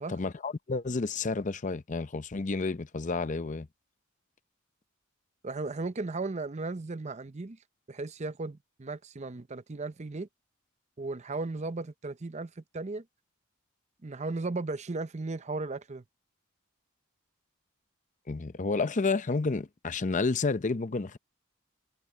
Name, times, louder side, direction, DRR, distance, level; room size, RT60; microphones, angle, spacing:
voice 1, 0.1-3.7 18.3-21.2, left 3 dB, 35° left, 0.6 m, -30 dB
voice 2, 5.4-7.6 7.9-10.3 11.0-13.1 14.0-16.0, right 3 dB, 35° right, 0.6 m, -36 dB
head